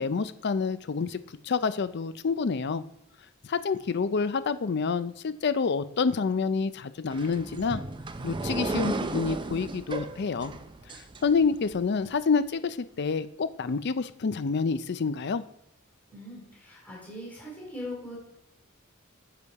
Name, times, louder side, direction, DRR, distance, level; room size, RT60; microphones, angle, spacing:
voice 1, 0.0-2.8 3.5-7.8 8.2-10.5 11.2-15.4, left 5 dB, 55° left, 14 dB, 0.5 m, -28 dB
sound 1, 7.1-11.8, right 2 dB, 25° right, 0.5 m, -34 dB
voice 2, 16.1-18.2, left 1 dB, 10° left, -5 dB, 3.8 m, -40 dB
8.1 x 6.9 x 4.7 m, 0.81 s
head